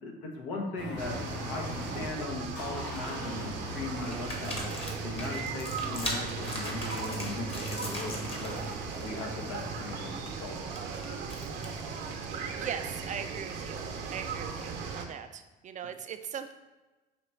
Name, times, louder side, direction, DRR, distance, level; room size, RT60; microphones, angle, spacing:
voice 1, 0.0-10.8, left 3 dB, 75° left, 1 dB, 0.9 m, -39 dB
sound 1, 0.8-2.1 2.5-10.2, equal, 60° left, 1.3 m, -41 dB
sound 2, 1.0-15.1, right 5 dB, 65° right, 0.7 m, -38 dB
sound 3, 2.3-2.4 2.8-3.4 4.0-8.7 9.0-9.3 9.6-11.9, left 1 dB, 30° left, 1.1 m, -40 dB
voice 2, 12.3-13.8 14.1-16.5, right 8 dB, 40° right, 9 dB, 0.4 m, -40 dB
5.0 x 3.0 x 3.2 m, 1.1 s
supercardioid pair, 75°, 20 cm